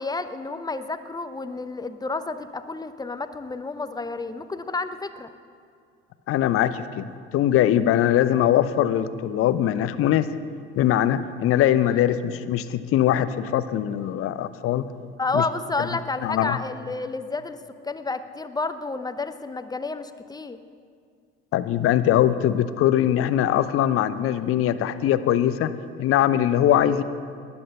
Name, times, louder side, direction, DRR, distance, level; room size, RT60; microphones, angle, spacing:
voice 1, 0.0-5.3 11.8-12.0 15.2-20.6, left 3 dB, 10° left, 11 dB, 0.8 m, -30 dB
voice 2, 6.3-10.3 10.8-14.9 15.3-15.4 16.2-16.6 21.5-25.7 26.0-27.0, left 11 dB, 40° left, 13 dB, 0.8 m, -21 dB
19.0 x 10.5 x 5.6 m, 2.2 s
figure-of-eight pair, 60°, 33 cm